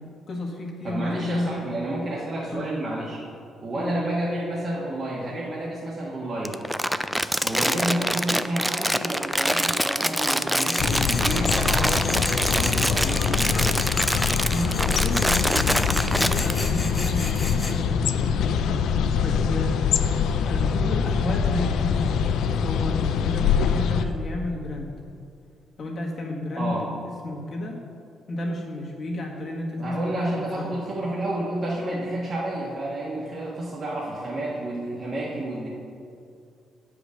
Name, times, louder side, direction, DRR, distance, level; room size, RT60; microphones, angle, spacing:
voice 1, 0.0-1.6 2.5-2.7 3.7-3.9 7.6-7.8 14.5-18.5 19.2-19.7 20.5-24.9 25.8-27.8 28.3-30.7, left 1 dB, 50° left, -1 dB, 1.6 m, -32 dB
voice 2, 0.8-3.2 3.6-6.6 7.4-13.7 26.5-26.8 29.8-35.7, right 1 dB, 40° right, -6 dB, 1.4 m, -30 dB
Crumpling crinkling, 6.4-16.5, equal, 5° right, 0.3 m, -25 dB
Tools, 10.5-17.8, left 2 dB, 20° left, 1.0 m, -34 dB
sound 1, 10.8-24.0, left 6 dB, 80° left, 0.4 m, -24 dB
8.1 x 5.0 x 6.3 m, 2.4 s
cardioid pair, 90°, 0 cm